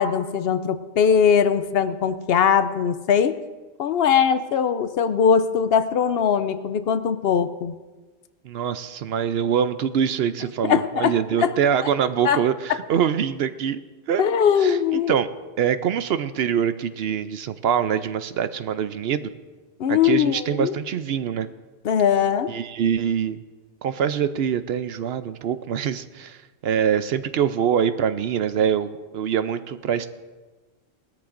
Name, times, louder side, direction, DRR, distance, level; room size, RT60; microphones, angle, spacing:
voice 1, 0.0-3.4 3.8-7.7 10.6-11.5 12.2-12.4 12.7-12.8 14.2-15.1 19.8-20.8 21.8-22.5, left 7 dB, 65° left, 12 dB, 0.8 m, -21 dB
voice 2, 8.4-13.8 14.1-14.2 14.6-15.3 15.6-19.3 19.9-21.5 22.5-23.4 23.8-30.1, right 8 dB, 70° right, 12 dB, 0.8 m, -24 dB
19.5 x 13.5 x 2.5 m, 1.3 s
omnidirectional pair, 1.1 m